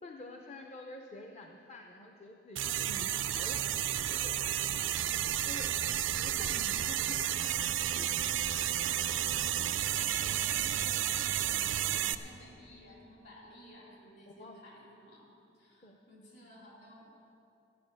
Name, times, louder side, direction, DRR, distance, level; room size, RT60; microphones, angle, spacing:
voice 1, 0.0-3.6 4.1-4.4 5.4-7.3 7.9-8.1 14.3-14.6 15.8-16.0, left 1 dB, 35° left, 2 dB, 0.7 m, -48 dB
sound 1, 2.6-12.2, right 11 dB, 75° right, 0.5 m, -32 dB
voice 2, 9.2-9.6 9.9-17.1, equal, 60° left, -4 dB, 3.9 m, -54 dB
14.0 x 9.7 x 6.3 m, 2.7 s
head